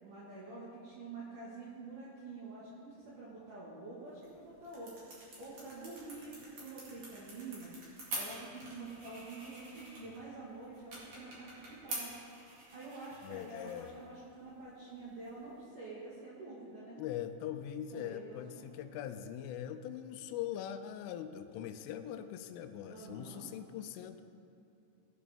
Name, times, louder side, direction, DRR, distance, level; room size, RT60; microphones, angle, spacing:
voice 1, 0.0-7.7 8.1-12.2 12.7-17.0 17.9-18.7 22.8-23.5, right 3 dB, 65° right, -8 dB, 2.1 m, -47 dB
sound 1, 4.0-15.6, right 2 dB, 45° right, 2.4 m, -48 dB
voice 2, 13.2-13.9 17.0-24.2, left 10 dB, 85° left, 9 dB, 3.0 m, -42 dB
17.5 x 7.1 x 3.4 m, 2.7 s
omnidirectional pair, 5.8 m